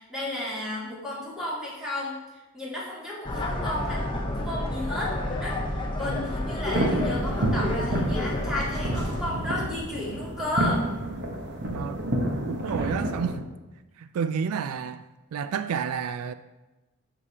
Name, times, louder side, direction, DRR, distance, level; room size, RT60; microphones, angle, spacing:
voice 1, 0.0-2.2 2.5-4.0 4.3-10.9, left 1 dB, 5° right, 2.4 m, -33 dB
sound 1, 3.3-9.3, left 1 dB, 20° left, 0.8 m, -30 dB
sound 2, 6.7-13.4, right 1 dB, 55° right, 1.1 m, -29 dB
voice 2, 11.7-13.5 14.0-15.0 15.3-16.3, right 7 dB, 80° right, 0.3 m, -31 dB
12.0 x 5.0 x 2.8 m
head